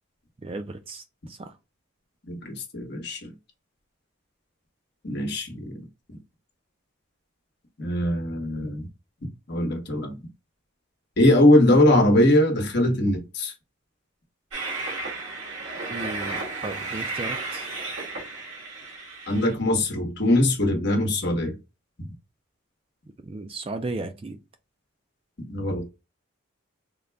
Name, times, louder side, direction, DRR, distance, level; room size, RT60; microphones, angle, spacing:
voice 1, 0.4-1.0 1.4-1.5 15.9-17.7 23.3-24.4, right 2 dB, 25° right, 0.3 m, -35 dB
voice 2, 2.3-3.3 5.0-5.8 7.8-8.9 9.5-10.1 11.2-13.5 19.3-21.6 25.5-25.9, left 1 dB, 50° left, 1.0 m, -21 dB
Train, 14.5-19.5, right 3 dB, 75° right, 1.6 m, -33 dB
3.7 x 2.2 x 3.4 m
head